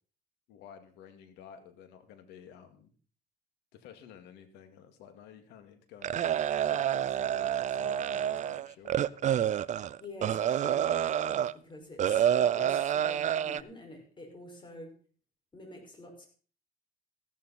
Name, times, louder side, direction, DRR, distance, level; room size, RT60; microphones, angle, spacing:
voice 1, 0.5-2.9 3.7-6.3 6.7-9.3, left 8 dB, 90° left, 8 dB, 2.2 m, -52 dB
sound 1, 6.0-11.5 12.0-13.6, right 10 dB, 45° right, 0.5 m, -28 dB
voice 2, 10.0-15.0 15.5-16.3, left 1 dB, 30° left, 3 dB, 5.4 m, -47 dB
14.5 x 12.5 x 4.2 m, 0.41 s
cardioid pair, 110°, 17 cm